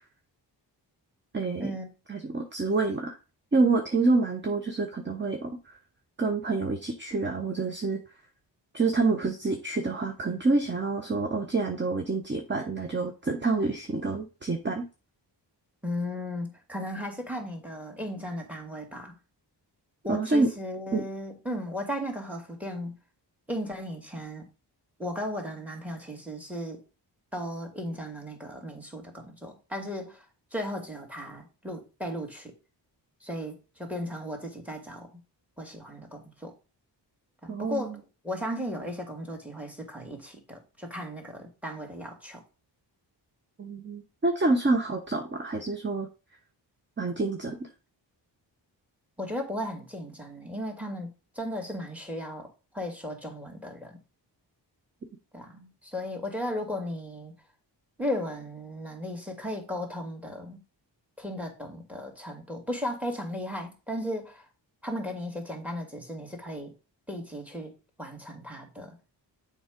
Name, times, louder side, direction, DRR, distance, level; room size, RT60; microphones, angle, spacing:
voice 1, 1.3-1.7 2.1-3.2 3.5-5.6 6.2-8.0 8.7-14.9 20.1-20.5 20.9-21.0 37.5-38.0 43.6-46.1 47.0-47.7, right 3 dB, 25° right, 1.0 m, -27 dB
voice 2, 15.8-19.2 20.0-23.0 23.5-24.5 25.0-26.8 27.3-30.3 30.5-32.5 33.2-35.1 35.6-36.5 37.4-42.4 49.2-52.5 52.7-54.0 55.3-57.3 58.0-60.6 61.2-64.5 64.8-66.7 67.1-69.0, equal, 5° right, 2.4 m, -36 dB
7.0 x 3.6 x 5.2 m
wide cardioid pair, 95°, 44 cm